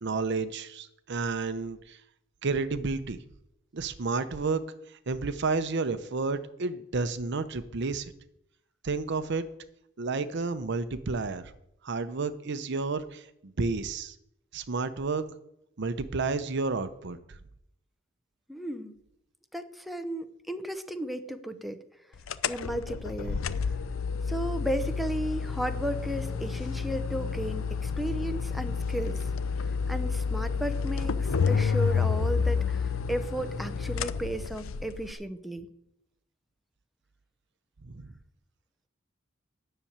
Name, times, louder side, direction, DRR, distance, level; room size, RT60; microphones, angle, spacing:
voice 1, 0.0-2.0 2.4-3.2 3.7-4.6 5.1-8.1 8.8-9.4 10.0-11.5 11.8-14.1 14.5-15.2 15.8-17.2 37.8-38.1, right 4 dB, 60° right, 12 dB, 0.7 m, -31 dB
voice 2, 18.5-18.9 19.5-21.8 22.5-23.7 24.3-29.3 29.9-32.8 33.1-35.7, right 1 dB, ahead, 9 dB, 0.7 m, -34 dB
sound 1, 22.3-35.1, left 5 dB, 85° left, 0.5 m, -30 dB
10.0 x 6.7 x 8.7 m, 0.79 s
head